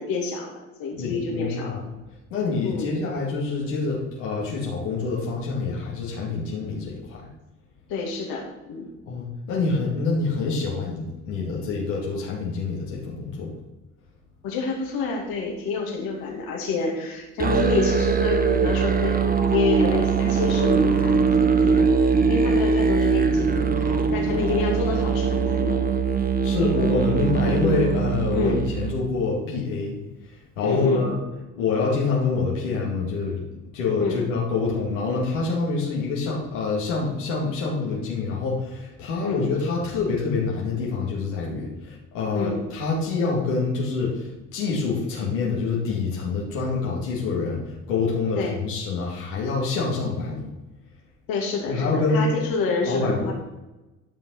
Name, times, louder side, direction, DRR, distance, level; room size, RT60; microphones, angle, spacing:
voice 1, 0.0-1.8 2.6-3.0 7.9-8.9 14.4-25.8 27.6-27.9 28.3-28.6 30.6-31.1 34.0-34.2 39.2-39.4 42.3-42.6 48.4-48.6 51.3-53.3, left 4 dB, 75° left, 0 dB, 2.4 m, -28 dB
voice 2, 0.9-1.9 2.3-7.3 9.1-13.5 26.4-30.0 30.2-31.2 31.5-33.4 33.7-50.5 51.6-52.3 52.8-53.3, left 4 dB, 90° left, -4 dB, 2.3 m, -26 dB
Musical instrument, 17.4-29.0, right 5 dB, 25° right, 1.2 m, -21 dB
12.0 x 5.6 x 5.6 m, 1.1 s
hypercardioid pair, 60°, 36 cm